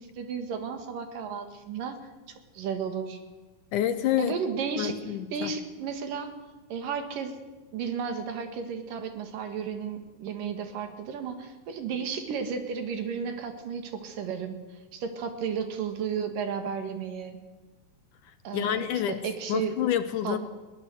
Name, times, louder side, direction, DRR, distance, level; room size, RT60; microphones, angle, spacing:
voice 1, 0.0-2.0 2.6-3.2 4.2-5.0 5.3-6.3 6.7-7.4 7.7-14.6 14.9-17.4 18.5-19.7 20.2-20.4, right 6 dB, 65° right, 7 dB, 3.4 m, -33 dB
voice 2, 3.7-4.3 4.8-5.5 18.5-19.2 19.5-20.4, left 11 dB, 70° left, 11 dB, 2.0 m, -28 dB
22.0 x 17.5 x 8.0 m, 1.2 s
omnidirectional pair, 4.4 m